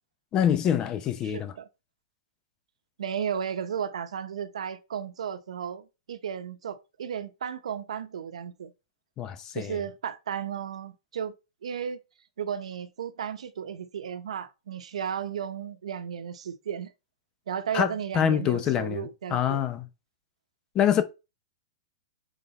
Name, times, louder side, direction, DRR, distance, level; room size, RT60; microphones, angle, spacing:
voice 1, 0.3-1.5 9.2-9.8 17.7-19.9 20.7-21.0, left 9 dB, 20° left, 0.8 m, -25 dB
voice 2, 1.2-1.7 3.0-8.7 9.5-11.3 11.6-12.0 12.4-16.9 17.5-19.6, right 8 dB, 90° right, 1.0 m, -34 dB
7.3 x 4.0 x 4.1 m
hypercardioid pair, 170°, 3 cm